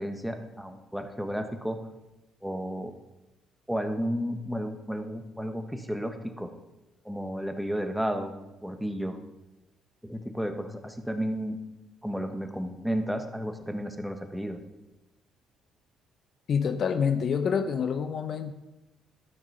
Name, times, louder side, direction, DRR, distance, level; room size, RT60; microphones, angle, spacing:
voice 1, 0.0-1.8 2.4-2.9 3.7-6.5 7.0-8.3 8.6-9.2 10.0-11.6 12.0-14.6, equal, ahead, 6 dB, 1.4 m, -32 dB
voice 2, 16.5-18.5, left 6 dB, 55° left, 10 dB, 0.7 m, -27 dB
12.0 x 6.0 x 5.5 m, 0.98 s
supercardioid pair, 60°, 0 cm